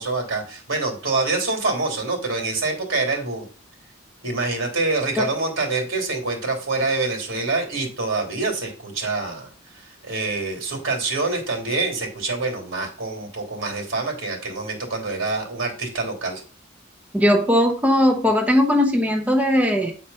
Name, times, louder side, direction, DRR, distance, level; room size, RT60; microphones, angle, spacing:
voice 1, 0.0-3.5 4.2-9.5 9.7-16.4, right 3 dB, 85° right, 1 dB, 2.9 m, -26 dB
voice 2, 17.1-19.9, left 1 dB, 10° right, 2 dB, 0.9 m, -19 dB
8.9 x 4.4 x 5.5 m, 0.39 s
head